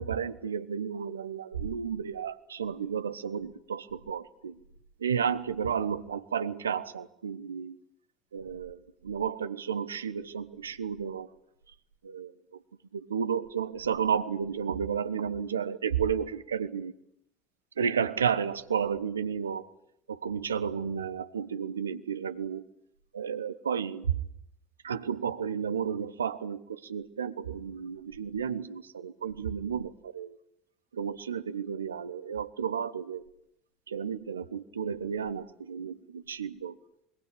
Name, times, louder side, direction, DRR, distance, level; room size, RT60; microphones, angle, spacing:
voice 1, 0.0-4.6 5.0-7.8 8.3-11.3 12.0-12.3 12.9-16.9 17.8-19.7 20.1-22.6 23.1-24.1 24.8-30.4 30.9-33.2 33.9-36.7, right 7 dB, 85° right, 13 dB, 1.2 m, -32 dB
26.0 x 22.0 x 8.6 m, 0.76 s
hypercardioid pair, 70°, 0 cm